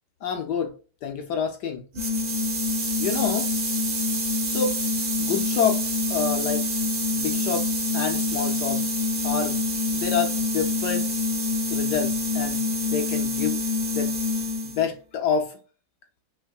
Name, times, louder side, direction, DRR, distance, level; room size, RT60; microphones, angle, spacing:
voice 1, 0.2-0.7 1.0-1.9 3.0-3.5 4.5-4.8 5.2-6.7 7.1-8.9 9.2-11.1 11.7-13.6 13.9-14.1 14.6-15.6, left 7 dB, 70° left, 1.0 m, -28 dB
sound 1, 1.9-14.9, left 2 dB, 80° right, 0.4 m, -26 dB
5.7 x 3.6 x 2.3 m
omnidirectional pair, 2.4 m